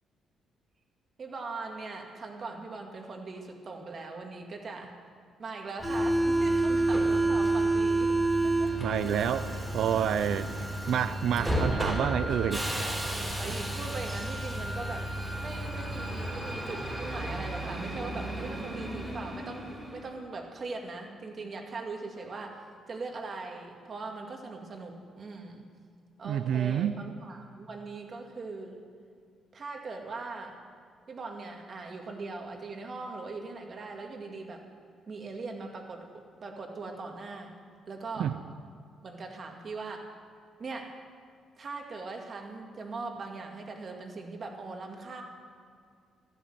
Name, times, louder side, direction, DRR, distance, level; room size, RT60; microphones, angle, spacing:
voice 1, 1.2-5.0 5.4-8.1 8.4-8.7 13.4-25.7 26.2-28.8 29.5-30.6 31.1-34.7 35.1-36.0 36.4-37.5 37.9-38.3 39.0-40.1 40.6-40.9 41.6-45.2, right 3 dB, 40° right, 2 dB, 2.2 m, -40 dB
Subway metro underground, 5.8-20.1, right 2 dB, 10° right, 3.3 m, -30 dB
voice 2, 8.8-12.7 26.2-27.0 38.2-38.4, right 9 dB, 70° right, 11 dB, 0.5 m, -29 dB
13.5 x 13.0 x 7.8 m, 2.2 s
cardioid pair, 130°, 0 cm